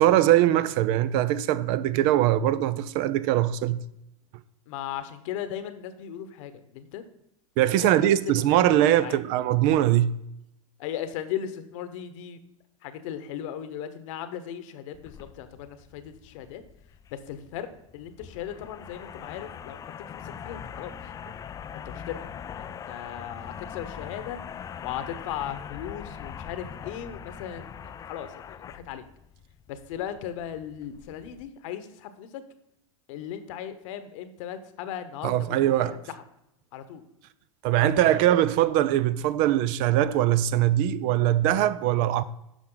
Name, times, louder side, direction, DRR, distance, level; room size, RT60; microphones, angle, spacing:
voice 1, 0.0-3.8 7.6-10.2 35.2-35.9 37.6-42.2, right 12 dB, 50° right, 0.5 m, -22 dB
voice 2, 4.7-7.0 7.8-9.2 10.8-12.4 12.8-16.6 17.1-19.8 20.1-20.9 21.7-22.3 22.6-24.4 24.8-29.0 29.7-32.4 33.1-36.2 36.7-37.0 37.7-38.2, left 10 dB, 60° left, 1.1 m, -37 dB
sound 1, 14.9-31.5, left 8 dB, 20° left, 0.4 m, -42 dB
10.0 x 6.1 x 3.9 m
hypercardioid pair, 110°, 18 cm